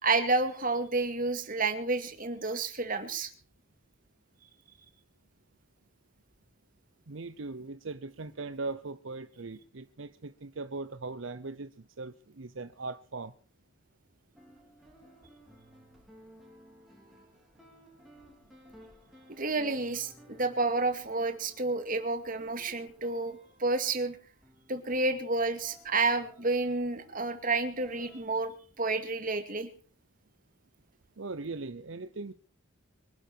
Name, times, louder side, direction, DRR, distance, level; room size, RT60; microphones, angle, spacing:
voice 1, 0.0-3.3 19.4-24.2 24.7-29.7, right 3 dB, 40° right, 2.3 m, -30 dB
voice 2, 7.1-13.3 31.2-32.3, right 3 dB, 70° right, 0.8 m, -39 dB
sound 1, 14.3-28.3, equal, ahead, 6.6 m, -57 dB
24.5 x 11.5 x 4.6 m
head